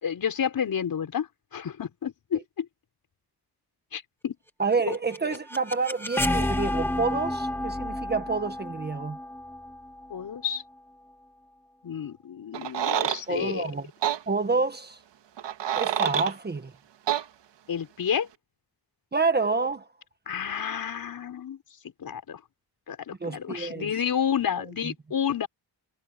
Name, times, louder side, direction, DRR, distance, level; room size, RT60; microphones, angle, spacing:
voice 1, 0.0-2.7 3.9-4.3 4.9-5.0 10.1-10.6 11.8-13.7 17.7-18.3 20.3-21.6 22.0-22.4 22.9-25.5, left 8 dB, 55° left, 5.7 m, -30 dB
voice 2, 4.6-9.2 13.3-13.9 14.3-15.0 15.7-16.7 19.1-19.8 23.2-23.9 24.8-24.9, right 4 dB, 25° right, 1.5 m, -28 dB
sound 1, 4.7-10.6, left 1 dB, 5° left, 1.4 m, -31 dB
sound 2, 12.5-13.2 14.0-14.2 15.4-16.3 17.1-17.2, right 10 dB, 90° right, 1.8 m, -27 dB
wide cardioid pair, 170°, 41 cm